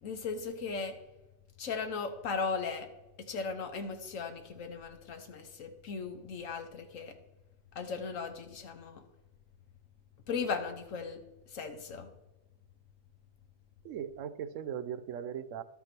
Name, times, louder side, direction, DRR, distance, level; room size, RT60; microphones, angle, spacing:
voice 1, 0.0-1.0 1.6-2.9 3.2-7.1 7.7-9.0 10.3-12.1, left 5 dB, 85° left, 7 dB, 1.4 m, -37 dB
voice 2, 13.8-15.6, right 9 dB, 80° right, 15 dB, 1.0 m, -38 dB
12.0 x 6.1 x 6.0 m, 1.0 s
omnidirectional pair, 1.3 m